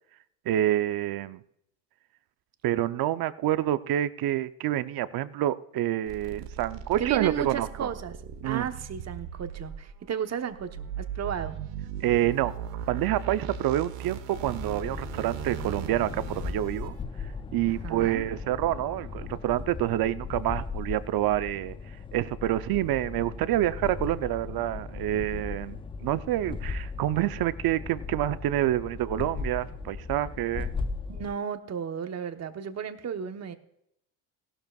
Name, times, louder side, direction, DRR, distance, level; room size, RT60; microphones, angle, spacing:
voice 1, 0.5-1.4 2.6-7.9 8.4-8.7 12.0-12.5 12.9-16.9 17.5-21.7 22.1-30.7, right 13 dB, 55° right, 13 dB, 0.7 m, -27 dB
sound 1, 6.1-16.9, right 8 dB, 85° right, 1.1 m, -39 dB
voice 2, 7.0-8.1 8.4-11.6 17.8-18.2 31.1-33.5, right 7 dB, 35° right, 8 dB, 1.1 m, -34 dB
sound 2, 14.3-31.3, left 4 dB, 15° left, 0.3 m, -37 dB
16.5 x 12.0 x 2.4 m, 0.76 s
supercardioid pair, 95°, 43 cm